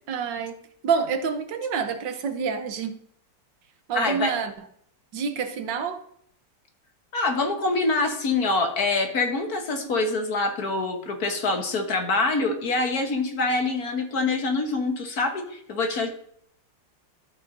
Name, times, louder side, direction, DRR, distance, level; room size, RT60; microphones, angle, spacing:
voice 1, 0.1-0.6 0.8-3.0 3.9-4.5 5.1-6.0, right 6 dB, 75° right, 8 dB, 1.6 m, -27 dB
voice 2, 3.9-4.3 7.1-16.1, left 3 dB, 55° left, 4 dB, 1.7 m, -25 dB
14.0 x 6.4 x 2.6 m, 0.68 s
omnidirectional pair, 2.0 m